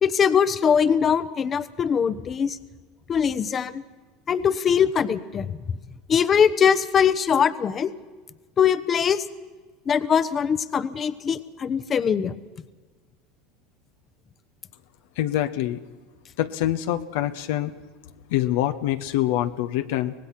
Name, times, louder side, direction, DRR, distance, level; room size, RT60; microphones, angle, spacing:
voice 1, 0.0-2.6 3.1-3.8 4.3-5.8 6.1-7.9 8.6-9.2 9.9-12.3, left 7 dB, 35° left, 14 dB, 1.0 m, -22 dB
voice 2, 15.2-15.8 16.4-17.7 18.3-20.1, left 13 dB, 70° left, 9 dB, 0.9 m, -25 dB
24.5 x 18.5 x 5.9 m, 1.3 s
hypercardioid pair, 85°, 0 cm